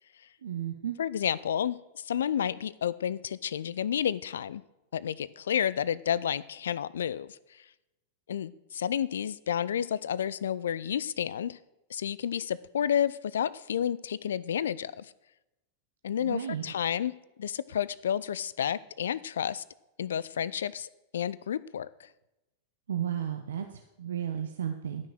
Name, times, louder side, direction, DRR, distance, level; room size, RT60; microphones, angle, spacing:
voice 1, 0.4-1.0 16.2-16.7 22.9-25.1, right 9 dB, 65° right, 6 dB, 0.7 m, -34 dB
voice 2, 1.0-4.6 4.9-7.4 8.3-11.6 11.9-15.1 16.0-19.6 20.0-21.9, left 9 dB, 65° left, 19 dB, 0.3 m, -31 dB
12.0 x 6.1 x 6.1 m, 0.93 s
figure-of-eight pair, 90°, 0 cm